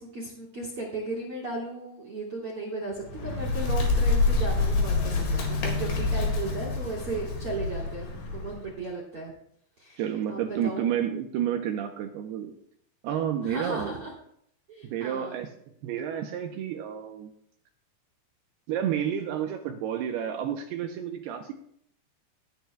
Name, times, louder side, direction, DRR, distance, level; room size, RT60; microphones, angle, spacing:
voice 1, 0.0-9.3 9.8-10.0 10.3-10.9 13.4-14.1 14.7-15.4, right 2 dB, 40° right, -3 dB, 2.4 m, -36 dB
Bird, 2.9-8.7, left 3 dB, 65° left, 3.6 m, -27 dB
voice 2, 10.0-12.5 13.0-14.0 14.8-15.5 15.8-17.3 18.7-21.5, right 9 dB, 80° right, 4 dB, 2.5 m, -30 dB
18.0 x 9.4 x 2.3 m, 0.69 s
omnidirectional pair, 5.2 m